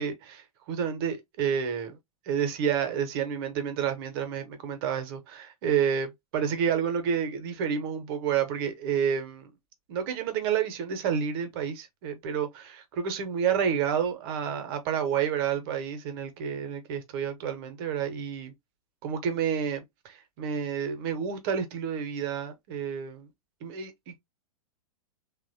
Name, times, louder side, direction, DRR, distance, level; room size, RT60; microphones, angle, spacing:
voice 1, 0.0-2.0 2.2-9.5 9.9-18.5 19.0-23.3 23.6-24.2, right 7 dB, 40° right, 0.7 m, -30 dB
2.9 x 2.1 x 2.5 m
figure-of-eight pair, 100°, 19 cm